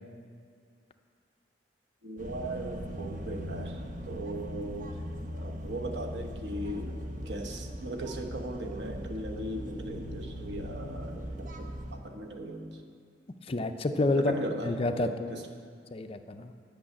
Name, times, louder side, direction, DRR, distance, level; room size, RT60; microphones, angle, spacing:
voice 1, 2.0-3.8 4.1-4.9 5.3-6.9 7.3-12.7 14.1-14.7 15.0-15.1, right 1 dB, 90° right, 3 dB, 1.2 m, -38 dB
sound 1, 2.2-12.0, equal, 50° right, 0.9 m, -39 dB
voice 2, 13.4-15.5 15.9-16.5, left 2 dB, 35° left, 8 dB, 0.5 m, -29 dB
10.5 x 6.3 x 8.6 m, 2.2 s
head